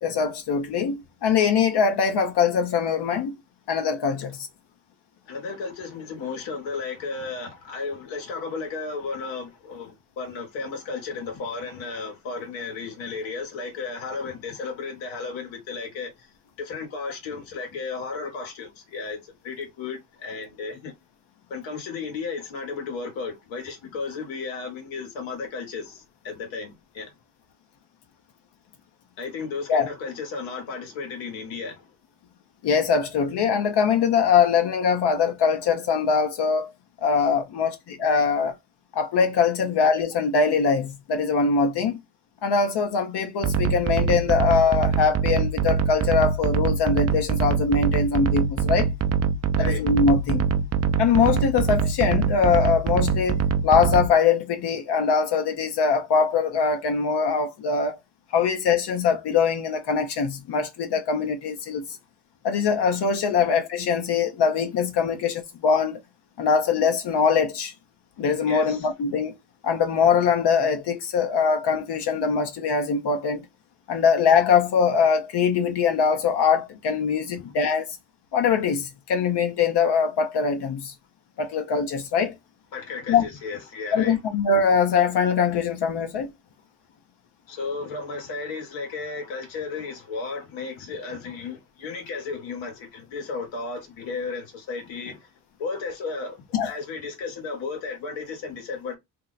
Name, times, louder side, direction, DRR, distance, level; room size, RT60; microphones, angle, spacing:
voice 1, 0.0-3.3 3.7-4.5 29.7-29.9 32.6-36.7 37.0-38.5 38.9-42.0 42.4-48.9 49.6-50.5 51.0-58.0 58.3-62.0 62.4-66.0 66.4-67.7 68.2-69.3 69.6-73.4 73.9-78.0 78.3-80.9 81.4-82.4 83.1-83.2 83.9-86.3 96.5-96.7, left 6 dB, 65° left, 0.7 m, -22 dB
voice 2, 5.3-16.3 16.6-20.9 21.5-27.1 29.2-31.9 49.6-49.9 68.5-68.9 77.4-77.5 82.7-84.2 87.5-95.3 95.6-99.0, left 4 dB, 85° left, 1.4 m, -34 dB
sound 1, 43.4-54.1, right 6 dB, 35° right, 0.5 m, -24 dB
2.8 x 2.1 x 3.9 m
cardioid pair, 75°, 45 cm